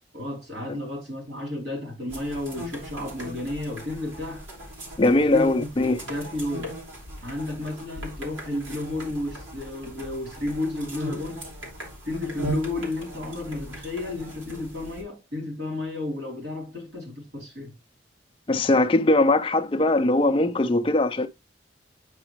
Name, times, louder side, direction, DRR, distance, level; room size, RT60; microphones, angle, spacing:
voice 1, 0.1-4.4 5.2-5.7 6.0-6.7 7.2-11.4 12.0-17.7, left 2 dB, 65° right, 3.1 m, -32 dB
sound 1, 2.1-15.0, right 1 dB, 90° right, 3.0 m, -38 dB
voice 2, 5.0-6.0 18.5-21.3, left 2 dB, 25° left, 0.4 m, -21 dB
8.8 x 4.9 x 3.0 m
head